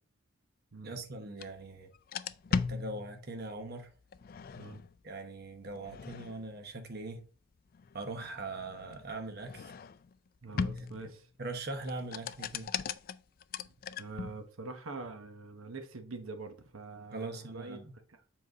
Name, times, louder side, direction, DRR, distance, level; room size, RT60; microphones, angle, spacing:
voice 1, 0.8-1.9 2.5-3.9 5.0-7.2 7.9-9.7 10.5-10.9 11.4-12.7 17.1-17.9, right 2 dB, 50° right, 1.0 m, -41 dB
sound 1, 1.4-1.5 1.9-3.5 4.1-5.0 5.7-6.6 7.7-10.1 10.6-11.2 11.8-14.5, left 5 dB, 45° left, 0.3 m, -38 dB
voice 2, 10.4-11.3 14.0-17.8 18.1-18.2, right 3 dB, 75° right, 1.0 m, -44 dB
7.4 x 4.0 x 4.0 m
head